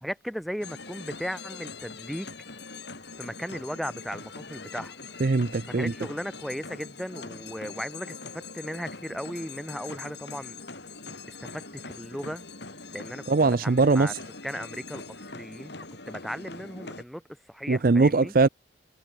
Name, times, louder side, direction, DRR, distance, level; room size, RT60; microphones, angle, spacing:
voice 1, 0.0-2.3 3.2-5.0 5.8-10.6 11.4-12.4 12.9-14.1 14.4-15.7 16.1-17.2 17.5-18.3, equal, ahead, 2.1 m, -36 dB
sound 1, 0.6-17.0, left 4 dB, 60° left, 5.2 m, -42 dB
voice 2, 5.2-5.9 13.3-14.2 17.7-18.5, right 3 dB, 45° right, 0.5 m, -21 dB
head